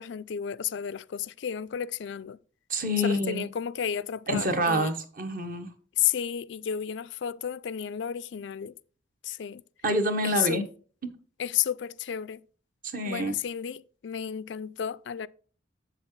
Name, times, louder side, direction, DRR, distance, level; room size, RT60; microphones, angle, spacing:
voice 1, 0.0-2.4 3.0-4.9 6.0-8.7 9.2-9.6 10.2-10.6 11.4-12.4 13.0-15.3, left 9 dB, 70° left, 0.4 m, -32 dB
voice 2, 2.7-3.5 4.3-5.7 9.8-10.6 11.0-11.1 12.8-13.3, equal, 45° right, 1.4 m, -27 dB
7.7 x 7.4 x 3.2 m
head